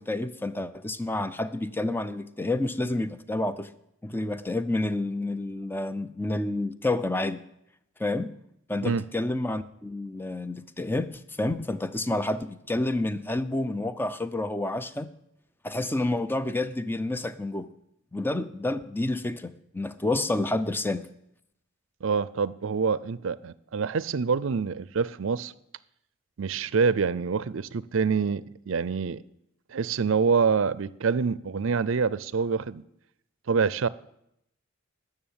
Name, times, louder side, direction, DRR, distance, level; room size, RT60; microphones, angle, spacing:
voice 1, 0.0-3.7 4.0-7.4 8.0-8.3 8.7-15.1 15.6-17.7 18.1-21.0, left 2 dB, 10° left, 0.5 m, -29 dB
voice 2, 22.0-25.5 26.4-29.2 29.7-32.8 33.5-33.9, right 5 dB, 65° right, 0.5 m, -26 dB
12.5 x 6.9 x 8.9 m
head